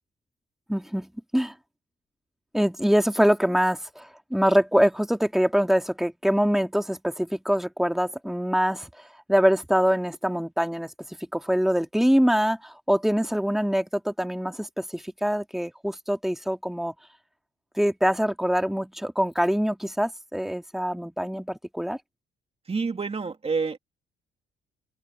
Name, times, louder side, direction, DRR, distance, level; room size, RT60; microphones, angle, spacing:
voice 1, 0.7-1.5 2.5-8.9 9.3-10.9 11.3-16.9 17.8-22.0, equal, ahead, 2.5 m, -24 dB
voice 2, 22.7-23.8, right 4 dB, 30° right, 2.8 m, -28 dB
open air
cardioid pair, 90°, 20 cm